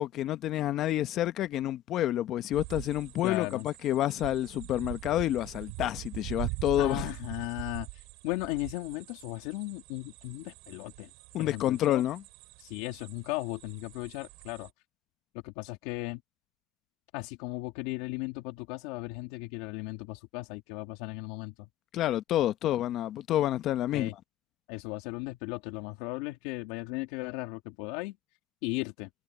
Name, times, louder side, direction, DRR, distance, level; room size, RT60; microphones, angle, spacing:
voice 1, 0.0-7.1 11.3-12.2 21.9-24.1, left 13 dB, 45° left, 0.9 m, -29 dB
sound 1, 2.5-14.7, right 29 dB, 70° right, 6.1 m, -43 dB
voice 2, 3.2-3.7 6.8-11.1 11.4-12.0 12.6-14.7 15.4-16.2 17.1-21.7 23.9-24.1 24.7-28.2 28.6-29.1, left 21 dB, 75° left, 2.6 m, -36 dB
cardioid pair, 140°, 0 cm